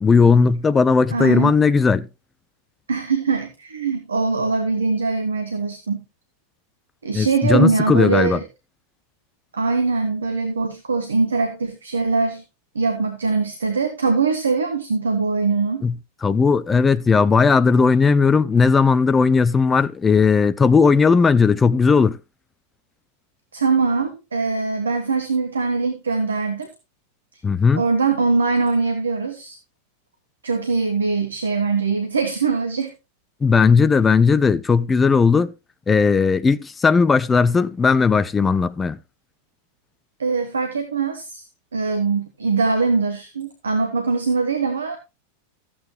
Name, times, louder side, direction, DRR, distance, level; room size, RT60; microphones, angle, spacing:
voice 1, 0.0-2.1 7.1-8.4 15.8-15.9 16.2-22.2 27.4-27.8 33.4-35.5 35.9-39.0, left 5 dB, 15° left, 0.5 m, -16 dB
voice 2, 1.1-1.5 2.9-6.0 7.0-8.4 9.5-12.4 12.7-15.8 23.5-26.7 27.7-29.6 30.4-32.9 40.2-41.4 41.7-45.0, right 4 dB, 70° right, 1.3 m, -22 dB
14.0 x 8.6 x 3.1 m
figure-of-eight pair, 90°, 0 cm